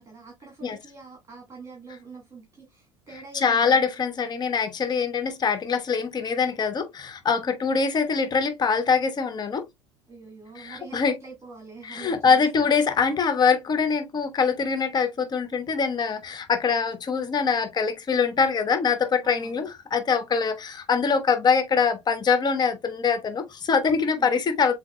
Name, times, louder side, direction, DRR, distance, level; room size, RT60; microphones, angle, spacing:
voice 1, 0.0-3.8 10.1-12.7 19.2-19.7 24.2-24.4, right 4 dB, 20° right, 2.1 m, -45 dB
voice 2, 3.3-9.6 10.6-11.2 11.8-24.8, left 5 dB, 25° left, 0.9 m, -23 dB
7.2 x 2.9 x 2.3 m
figure-of-eight pair, 65°, 16 cm